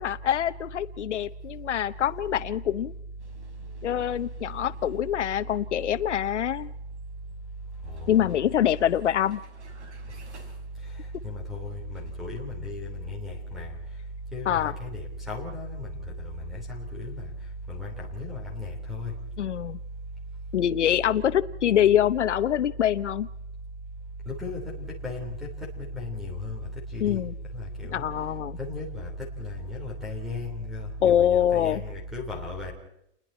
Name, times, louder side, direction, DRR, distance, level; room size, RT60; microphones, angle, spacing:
voice 1, 0.0-2.9 3.8-6.7 8.1-9.4 14.5-14.7 19.4-19.8 20.5-23.3 27.0-27.3 27.8-28.6 31.0-31.8, left 10 dB, 90° left, 1.0 m, -25 dB
Vehicle, 3.2-12.3, right 4 dB, 75° right, 5.7 m, -57 dB
voice 2, 11.2-13.7 14.3-15.9 16.2-17.2 17.7-19.1 24.3-25.3 25.8-26.6 26.9-27.2 27.5-28.0 28.6-29.1 29.4-32.7, left 2 dB, ahead, 3.2 m, -35 dB
30.0 x 21.0 x 4.4 m
hypercardioid pair, 180°, 35 cm